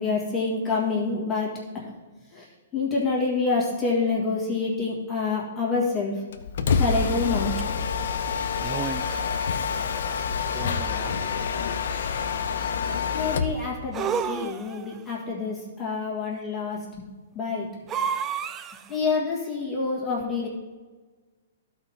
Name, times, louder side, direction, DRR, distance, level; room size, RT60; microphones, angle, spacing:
voice 1, 0.0-1.9 2.3-2.4 2.7-6.2 6.8-7.6 13.1-16.8 17.3-17.7 18.9-20.5, left 4 dB, 15° left, -5 dB, 1.7 m, -27 dB
Mechanisms, 6.3-13.6, left 6 dB, 70° left, 0.8 m, -27 dB
sound 1, 7.6-7.7 8.6-9.3 10.5-11.3 13.9-15.0 17.9-19.0, right 7 dB, 20° right, 0.3 m, -31 dB
12.0 x 4.4 x 5.6 m, 1.3 s
hypercardioid pair, 155°, 0 cm